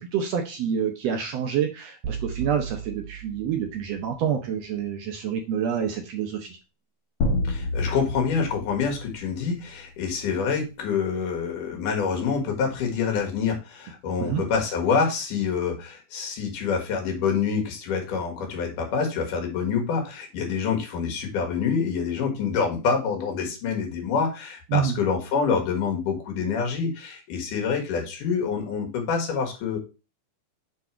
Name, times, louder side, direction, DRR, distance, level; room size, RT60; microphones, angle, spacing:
voice 1, 0.0-6.6 14.2-14.4 24.7-25.0, right 8 dB, 70° right, 4 dB, 1.7 m, -27 dB
sound 1, 2.0-4.3, right 7 dB, 85° right, 3.2 m, -35 dB
sound 2, 7.2-10.0, left 2 dB, 55° left, 2.9 m, -29 dB
voice 2, 7.4-29.8, left 6 dB, 80° left, 2 dB, 3.2 m, -26 dB
7.4 x 4.1 x 4.5 m, 0.30 s
omnidirectional pair, 3.6 m